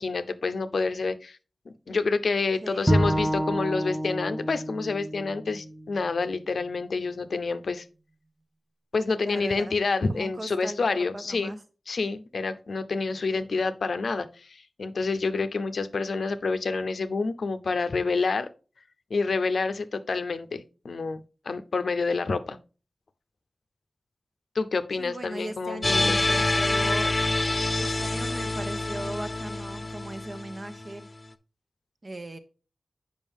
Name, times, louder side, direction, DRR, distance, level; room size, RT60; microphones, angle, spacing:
voice 1, 0.0-1.4 1.9-7.8 8.9-11.5 11.9-18.5 19.1-22.6 24.5-26.4, left 4 dB, 85° left, 11 dB, 0.5 m, -28 dB
Bowed string instrument, 2.9-6.1, right 1 dB, 10° right, 0.9 m, -28 dB
voice 2, 9.2-9.8 10.1-10.9 11.1-11.6 25.0-27.1 27.8-31.0 32.0-32.4, right 1 dB, 50° right, 8 dB, 0.9 m, -38 dB
sound 1, 25.8-30.9, left 2 dB, 30° left, 0.5 m, -26 dB
7.1 x 5.3 x 3.5 m, 0.35 s
wide cardioid pair, 55°, 0 cm